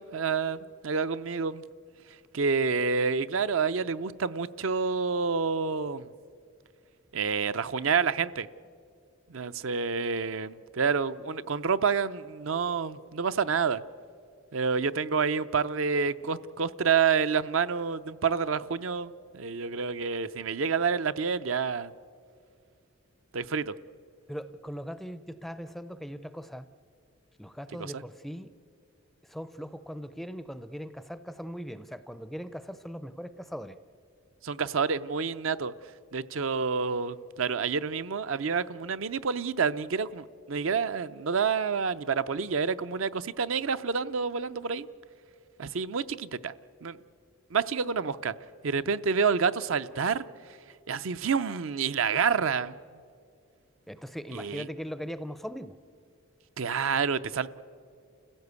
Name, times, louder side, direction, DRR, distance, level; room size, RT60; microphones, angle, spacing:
voice 1, 0.0-1.6 2.3-6.1 7.1-8.5 9.3-13.8 14.5-21.9 23.3-23.7 27.8-28.0 34.4-35.7 36.1-44.9 45.6-46.5 46.8-47.0 47.5-48.3 48.6-50.3 50.9-52.7 54.3-54.7 56.6-57.5, right 5 dB, 65° right, 0.6 m, -28 dB
voice 2, 24.3-26.7 27.4-28.5 29.3-33.8 53.9-55.8, equal, ahead, 0.5 m, -39 dB
29.0 x 16.0 x 8.2 m
head